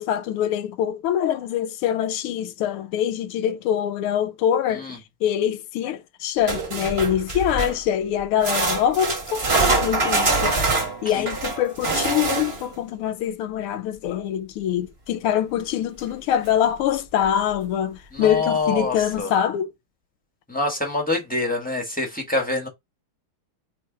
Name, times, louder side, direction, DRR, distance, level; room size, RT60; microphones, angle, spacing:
voice 1, 0.0-10.6 11.0-19.7, left 10 dB, 85° left, 1.5 m, -24 dB
sound 1, 6.5-7.9 8.4-12.7 16.0-16.1 16.4-16.5 17.3-17.4, right 3 dB, 40° right, 1.0 m, -24 dB
voice 2, 18.1-19.3 20.5-22.7, left 2 dB, 10° left, 0.5 m, -25 dB
3.2 x 3.2 x 4.7 m
omnidirectional pair, 2.4 m